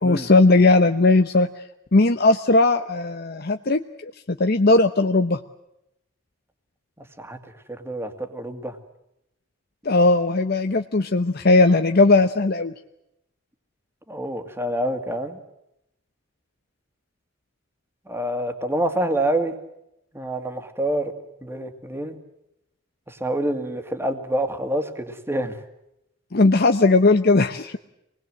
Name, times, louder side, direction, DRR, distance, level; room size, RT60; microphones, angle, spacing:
voice 1, 0.0-1.5 1.9-5.4 9.8-12.7 26.3-27.8, left 2 dB, 55° left, 7 dB, 0.9 m, -18 dB
voice 2, 7.7-8.8 14.1-15.4 18.1-19.5 20.1-21.1 21.4-22.2 23.1-25.5, right 1 dB, 15° right, 8 dB, 2.2 m, -27 dB
26.0 x 20.5 x 7.7 m, 0.85 s
head